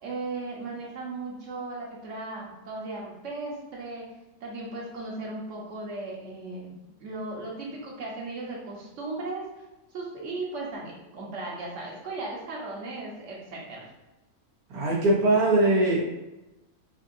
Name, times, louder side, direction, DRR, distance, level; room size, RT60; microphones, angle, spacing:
voice 1, 0.0-4.0 4.4-6.7 7.0-9.5 9.9-13.9, right 2 dB, 55° right, -3 dB, 1.4 m, -36 dB
voice 2, 14.7-16.0, right 2 dB, 75° right, -4 dB, 1.7 m, -21 dB
6.6 x 2.8 x 2.6 m, 1.0 s
omnidirectional pair, 1.6 m